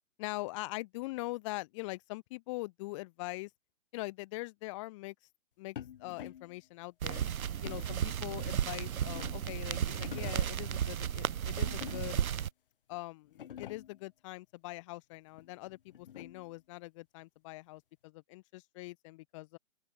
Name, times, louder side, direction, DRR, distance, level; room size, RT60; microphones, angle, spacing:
voice 1, 0.2-3.5 3.9-5.1 5.6-7.2 7.6-12.2 12.9-19.6, left 22 dB, 20° left, 3.1 m, -42 dB
sound 1, 5.8-6.6 7.6-8.1 8.7-9.6 9.9-10.6 11.6-12.3 12.9-13.0 13.3-14.0 15.4-16.5, left 10 dB, 40° left, 1.6 m, -47 dB
sound 2, 7.0-12.5, right 9 dB, 90° right, 0.9 m, -34 dB
open air
hypercardioid pair, 165°, 41 cm